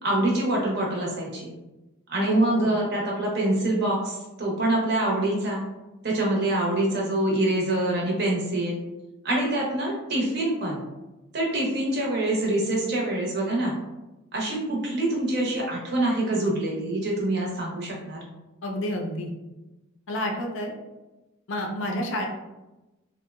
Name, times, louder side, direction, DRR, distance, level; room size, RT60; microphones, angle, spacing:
voice 1, 0.0-1.5 2.1-5.6 6.0-8.8 9.2-10.8 11.3-13.7 14.3-18.2, right 1 dB, 50° right, -2 dB, 0.6 m, -25 dB
voice 2, 2.2-2.7 18.6-19.3 20.1-20.7 21.5-22.3, left 1 dB, 60° left, 2 dB, 0.4 m, -29 dB
2.7 x 2.0 x 2.3 m, 1.0 s
head